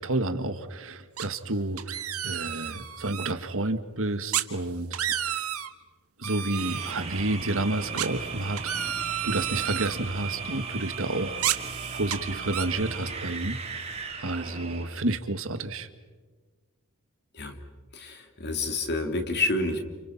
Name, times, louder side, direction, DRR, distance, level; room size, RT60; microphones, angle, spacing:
voice 1, 0.0-5.4 6.2-9.0 9.2-11.3 11.9-13.6 14.2-15.9, right 2 dB, 65° right, 9 dB, 1.8 m, -30 dB
sound 1, 1.2-1.5 1.8-3.3 4.3-4.5 4.8-5.7 6.2-6.9 8.0-9.9 11.4-12.2 12.5-12.7, right 10 dB, 85° right, 1.6 m, -31 dB
sound 2, 6.5-15.0, right 5 dB, 30° right, 3.4 m, -37 dB
voice 2, 17.9-19.9, left 2 dB, 50° left, 5 dB, 2.9 m, -29 dB
30.0 x 29.0 x 5.9 m, 1.4 s
head